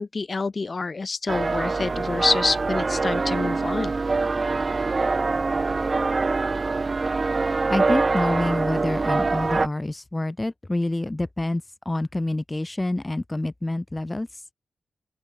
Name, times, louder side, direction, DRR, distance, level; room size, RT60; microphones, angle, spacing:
voice 1, 0.0-3.9, left 4 dB, 30° left, 3.0 m, -27 dB
sound 1, 1.3-9.7, right 3 dB, 30° right, 0.7 m, -24 dB
voice 2, 7.7-14.3, left 2 dB, 15° left, 0.9 m, -27 dB
open air
wide cardioid pair, 145°, 0 cm